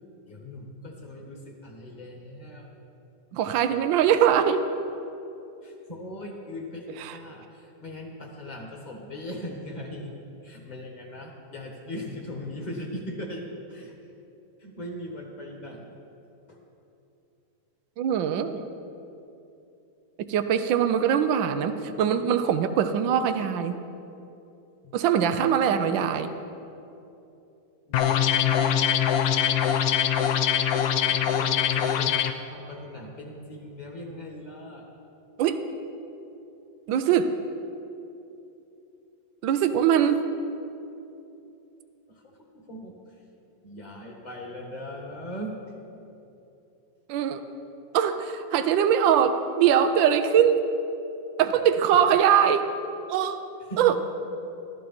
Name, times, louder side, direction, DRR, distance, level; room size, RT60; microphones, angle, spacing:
voice 1, 0.3-2.7 5.6-10.1 10.4-13.9 14.6-16.0 16.5-16.6 24.8-24.9 27.9-28.1 28.3-28.7 31.0-34.8 42.1-42.9 43.6-45.6 53.7-54.0, left 1 dB, 25° left, 1 dB, 1.5 m, -39 dB
voice 2, 3.3-4.7 7.0-7.2 18.0-18.7 20.2-23.8 24.9-26.3 35.4-35.6 36.9-37.3 39.4-40.2 47.1-47.4 47.9-50.7 51.4-52.7 53.1-53.4 53.8-54.0, right 8 dB, 90° right, 9 dB, 1.4 m, -22 dB
sound 1, 27.9-32.3, left 9 dB, 65° left, 0.9 m, -23 dB
15.0 x 13.0 x 4.3 m, 2.8 s
omnidirectional pair, 2.0 m